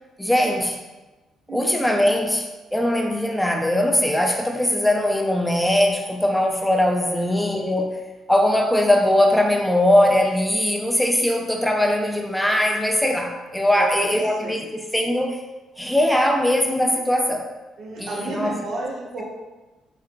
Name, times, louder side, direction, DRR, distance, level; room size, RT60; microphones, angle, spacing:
voice 1, 0.2-0.8 1.5-8.0 8.3-15.4 15.8-17.5 18.0-18.6, left 1 dB, 5° left, 1 dB, 0.3 m, -20 dB
voice 2, 13.7-14.1 14.4-14.6 17.8-19.3, right 2 dB, 70° right, -2 dB, 0.8 m, -31 dB
3.3 x 2.8 x 2.2 m, 1.1 s
cardioid pair, 90°, 0 cm